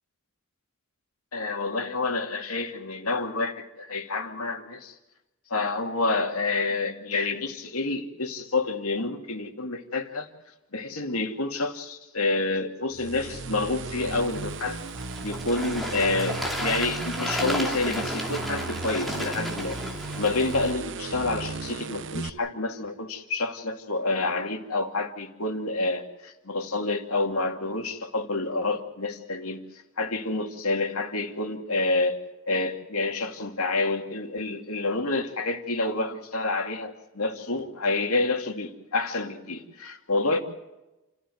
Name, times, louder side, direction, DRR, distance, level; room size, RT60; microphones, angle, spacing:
voice 1, 1.3-4.9 5.5-10.3 10.7-14.8 15.2-29.6 30.0-32.2 32.5-40.4, left 3 dB, 80° left, 4 dB, 2.6 m, -28 dB
sound 1, 12.9-22.3, right 3 dB, 55° right, 0.9 m, -36 dB
Bird / Water, 14.0-20.7, equal, ahead, 2.8 m, -33 dB
29.0 x 14.5 x 7.9 m, 1.0 s
head